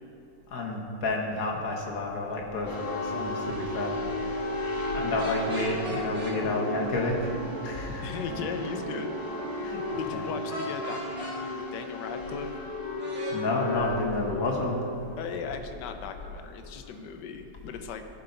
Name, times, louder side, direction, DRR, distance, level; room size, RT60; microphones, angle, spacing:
voice 1, 0.5-7.3 7.6-8.0 9.6-9.8 10.1-10.2 13.3-14.8, left 2 dB, 55° left, 0 dB, 1.5 m, -30 dB
sound 1, 2.7-16.9, left 1 dB, 25° left, 0.4 m, -34 dB
sound 2, 5.2-6.4 10.5-11.4 13.0-13.4, right 1 dB, 50° right, 2.0 m, -38 dB
Piano, 6.4-11.7, right 6 dB, 90° right, 1.3 m, -42 dB
voice 2, 8.0-9.1 10.0-12.5 15.2-18.0, left 6 dB, 75° left, 7 dB, 1.3 m, -37 dB
14.5 x 5.6 x 3.9 m, 2.7 s
omnidirectional pair, 1.9 m